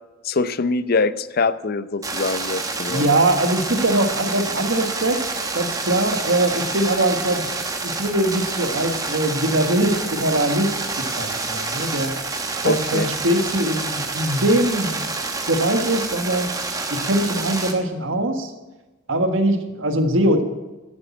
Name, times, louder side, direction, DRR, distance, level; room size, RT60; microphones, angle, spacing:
voice 1, 0.2-3.1 12.6-13.1, left 3 dB, 50° left, 14 dB, 0.6 m, -23 dB
sound 1, 2.0-17.7, right 3 dB, 20° right, 1.2 m, -28 dB
voice 2, 2.9-7.5 7.8-10.7 11.2-12.1 12.6-15.1 15.5-16.5 16.9-18.5 19.1-20.4, right 1 dB, 70° right, 6 dB, 1.6 m, -22 dB
11.5 x 8.6 x 8.4 m, 1.1 s
head